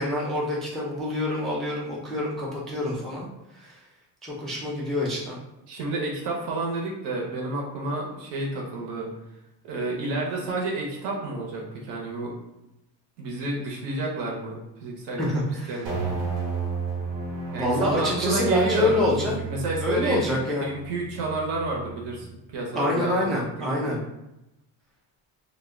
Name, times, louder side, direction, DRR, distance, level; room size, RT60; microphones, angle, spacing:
voice 1, 0.0-3.3 3.5-3.7 4.2-5.4 15.2-15.3 15.5-15.8 17.5-19.3 19.8-20.7 22.7-24.0, left 1 dB, ahead, -5 dB, 0.3 m, -26 dB
voice 2, 5.7-9.1 9.6-12.3 13.2-15.2 15.7-16.1 17.5-24.0, right 2 dB, 65° right, -2 dB, 0.8 m, -30 dB
sound 1, 15.9-22.3, right 5 dB, 85° right, 1.0 m, -33 dB
2.6 x 2.1 x 3.6 m, 0.93 s
cardioid pair, 155°, 44 cm